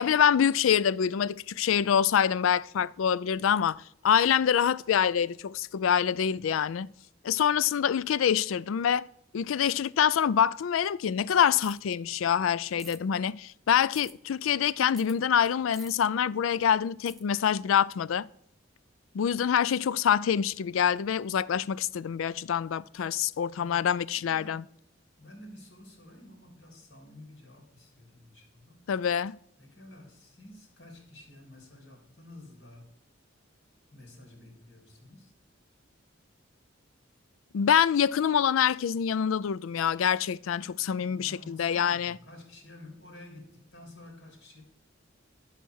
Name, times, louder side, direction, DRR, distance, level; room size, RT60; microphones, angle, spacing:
voice 1, 0.0-6.9 7.2-9.1 9.3-18.3 19.1-24.6 28.9-29.4 37.5-42.2, left 8 dB, 85° left, 0.4 m, -25 dB
sound 1, 11.6-11.9 12.8-13.0 13.9-14.1 15.0-15.2 15.7-15.9 17.1-17.2, right 1 dB, ahead, 0.6 m, -48 dB
voice 2, 23.4-24.6 25.2-28.9 29.6-32.9 33.9-35.3 41.0-44.6, left 1 dB, 60° left, 3.3 m, -51 dB
12.0 x 5.8 x 6.4 m
head